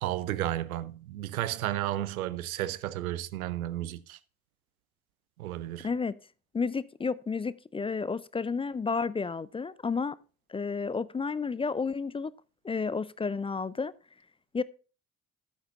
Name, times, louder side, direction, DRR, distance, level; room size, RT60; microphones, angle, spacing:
voice 1, 0.0-4.2 5.4-5.9, right 14 dB, 80° right, 0.6 m, -33 dB
voice 2, 5.8-6.2 6.5-10.2 10.5-12.3 12.6-13.9 14.5-14.6, left 5 dB, 15° left, 0.4 m, -31 dB
13.0 x 8.3 x 2.4 m
figure-of-eight pair, 40°, 42 cm